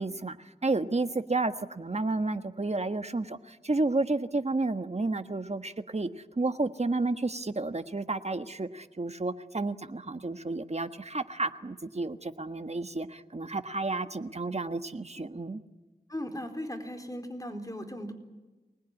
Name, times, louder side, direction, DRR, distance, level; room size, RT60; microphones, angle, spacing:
voice 1, 0.0-6.1 6.4-15.6, right 3 dB, 40° right, 9 dB, 1.4 m, -31 dB
voice 2, 16.1-18.1, equal, 20° left, 4 dB, 4.1 m, -37 dB
25.0 x 20.0 x 9.9 m, 1.2 s
wide cardioid pair, 50°, 16 cm